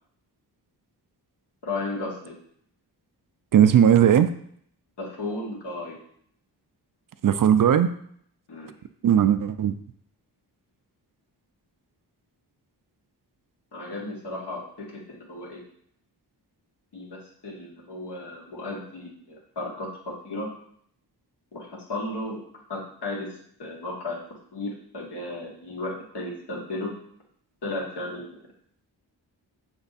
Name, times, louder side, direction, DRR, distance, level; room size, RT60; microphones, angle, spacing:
voice 1, 1.6-2.4 5.0-6.0 8.5-8.7 13.7-15.6 16.9-20.5 21.5-22.4 22.7-24.2 24.5-26.9 27.6-28.3, left 2 dB, 70° left, -2 dB, 1.9 m, -34 dB
voice 2, 3.5-4.3 7.2-7.9 9.0-9.7, right 9 dB, 55° right, 11 dB, 0.5 m, -17 dB
6.5 x 3.5 x 4.1 m, 0.65 s
cardioid pair, 65°, 41 cm